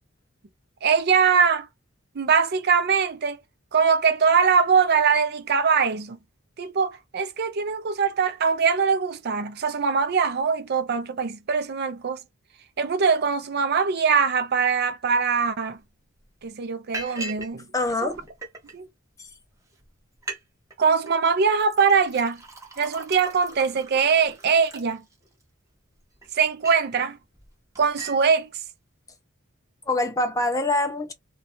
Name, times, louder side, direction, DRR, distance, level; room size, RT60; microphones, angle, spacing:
voice 1, 0.8-1.7 2.2-3.4 3.7-6.2 6.6-12.2 12.8-15.8 16.4-17.6 18.0-18.1 18.7-18.9 20.8-22.4 22.8-25.0 26.3-27.2 27.8-28.5, right 5 dB, 50° right, 0.4 m, -22 dB
Liquid, 15.8-15.9 16.2-16.5 16.9-17.5 17.8-18.7 19.4-19.5 19.8-19.9 20.1-20.4 20.7-21.1 21.6-25.4 25.9-26.9 27.3-27.5 27.8-28.2, right 2 dB, 15° right, 0.7 m, -39 dB
voice 2, 17.7-18.3 19.2-19.3 29.9-31.1, left 2 dB, 15° left, 0.5 m, -25 dB
2.6 x 2.3 x 2.8 m
head